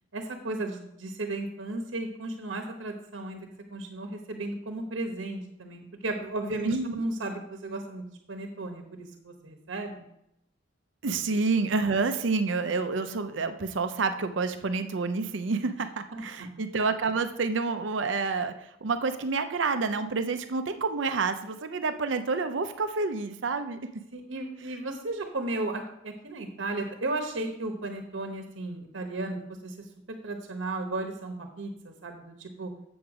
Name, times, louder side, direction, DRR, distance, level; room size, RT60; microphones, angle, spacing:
voice 1, 0.1-10.0 11.1-11.2 16.1-16.5 24.1-29.9 30.2-32.7, right 2 dB, 90° right, 4 dB, 1.0 m, -35 dB
voice 2, 6.6-7.0 11.0-23.8, right 4 dB, 75° right, 9 dB, 0.6 m, -28 dB
7.9 x 7.0 x 4.8 m, 0.79 s
head